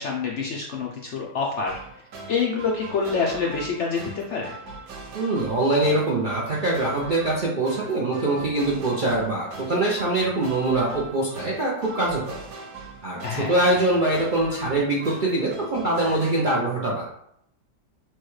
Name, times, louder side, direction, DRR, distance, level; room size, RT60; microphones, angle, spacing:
voice 1, 0.0-1.8 2.3-4.5 13.2-13.7, left 5 dB, 75° left, -2 dB, 0.6 m, -27 dB
sound 1, 1.7-16.4, right 3 dB, 65° right, 1.2 m, -41 dB
voice 2, 5.1-12.4 13.0-17.1, right 2 dB, 85° right, -4 dB, 0.4 m, -23 dB
6.1 x 2.3 x 3.1 m, 0.73 s
omnidirectional pair, 1.8 m